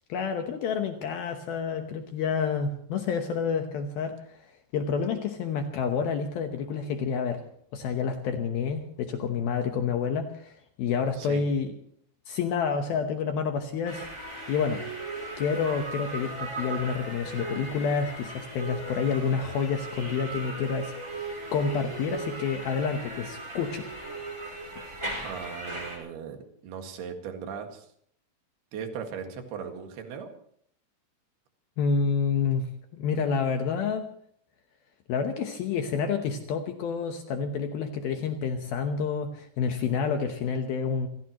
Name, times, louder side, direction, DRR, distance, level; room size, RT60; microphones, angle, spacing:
voice 1, 0.1-7.4 7.7-11.7 12.3-14.1 14.5-14.8 15.4-20.9 21.5-23.9 31.8-32.7 32.9-34.1 35.1-41.1, left 6 dB, 80° left, 5 dB, 2.1 m, -29 dB
sound 1, 13.8-26.0, right 2 dB, 15° right, 4.8 m, -37 dB
voice 2, 25.2-27.9 28.7-30.3, right 7 dB, 60° right, 5 dB, 3.4 m, -38 dB
28.0 x 17.0 x 3.1 m, 0.65 s
omnidirectional pair, 6.0 m